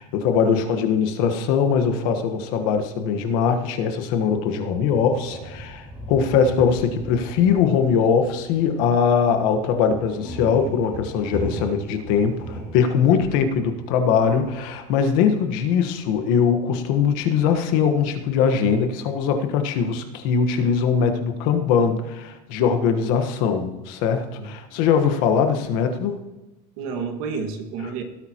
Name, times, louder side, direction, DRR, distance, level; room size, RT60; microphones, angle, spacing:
voice 1, 0.0-26.1, left 6 dB, 65° left, 7 dB, 1.4 m, -21 dB
sound 1, 5.1-15.6 15.9-18.3, right 1 dB, 10° right, 3.0 m, -38 dB
voice 2, 24.3-24.8 26.8-28.0, right 5 dB, 70° right, 5 dB, 1.9 m, -31 dB
17.5 x 8.7 x 3.0 m, 1.1 s
cardioid pair, 165°, 18 cm